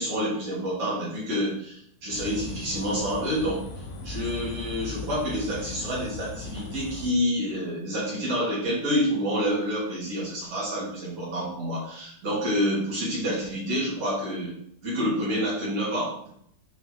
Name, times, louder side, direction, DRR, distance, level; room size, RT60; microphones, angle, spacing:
voice 1, 0.0-14.6 14.8-16.2, equal, 40° right, -7 dB, 3.0 m, -28 dB
sound 1, 2.1-7.1, left 4 dB, 65° left, 2.4 m, -38 dB
8.3 x 4.9 x 3.3 m, 0.68 s
omnidirectional pair, 5.4 m